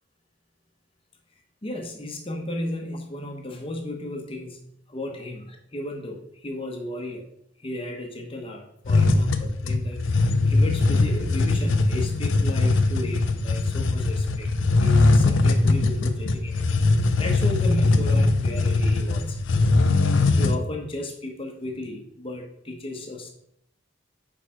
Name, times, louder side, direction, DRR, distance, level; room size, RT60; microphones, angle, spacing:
voice 1, 1.6-7.3 7.6-14.5 14.8-16.8 17.2-19.4 20.3-23.3, left 1 dB, 30° left, 2 dB, 1.0 m, -34 dB
sound 1, 8.8-20.6, left 3 dB, 90° left, 0.6 m, -21 dB
6.4 x 4.8 x 4.5 m, 0.72 s
head